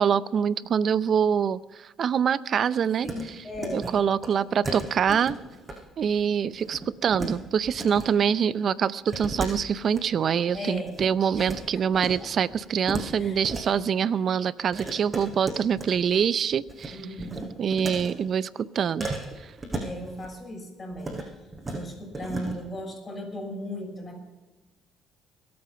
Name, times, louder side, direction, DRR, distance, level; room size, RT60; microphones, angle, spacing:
voice 1, 0.0-3.1 3.7-5.4 6.0-17.0 17.6-19.1 19.4-19.5, right 7 dB, 55° right, 17 dB, 0.6 m, -25 dB
voice 2, 3.0-3.9 10.5-11.0 11.4-12.3 13.2-13.4 16.9-17.5 19.8-21.2 21.7-24.2, left 1 dB, 30° left, -1 dB, 6.7 m, -37 dB
sound 1, 3.0-3.2 3.5-3.9 4.2-4.3 4.6-5.7 6.0-6.2 6.5-7.3 7.6-8.1 9.1-10.0 10.5-11.6 11.9-12.2 12.5-13.6 14.7-16.2 16.5-16.9 17.2-18.1 19.0-20.3 20.9-21.3 21.5-21.8 22.1-22.5, right 2 dB, 20° right, 5.8 m, -35 dB
23.0 x 8.7 x 5.8 m, 1.2 s
supercardioid pair, 80°, 0 cm